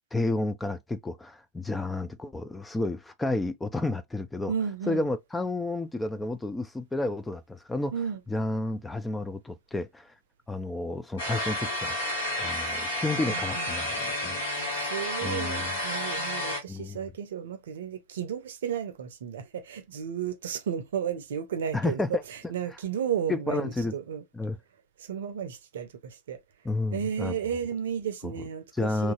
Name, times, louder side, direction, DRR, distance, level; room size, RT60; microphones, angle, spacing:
voice 1, 0.1-4.5 4.9-7.9 8.3-10.1 10.5-12.0 12.4-14.4 15.2-15.8 16.7-17.0 21.7-22.2 23.3-23.9 24.3-24.6 26.6-27.3 28.2-28.3 28.7-29.1, left 2 dB, 10° left, 0.3 m, -31 dB
voice 2, 4.5-5.0 7.9-8.2 13.2-13.7 14.5-22.0 22.3-24.2 25.1-26.4 26.9-29.1, right 8 dB, 60° right, 0.6 m, -33 dB
sound 1, 11.2-16.6, left 1 dB, 65° left, 1.4 m, -31 dB
2.9 x 2.6 x 2.3 m
figure-of-eight pair, 90°, 0 cm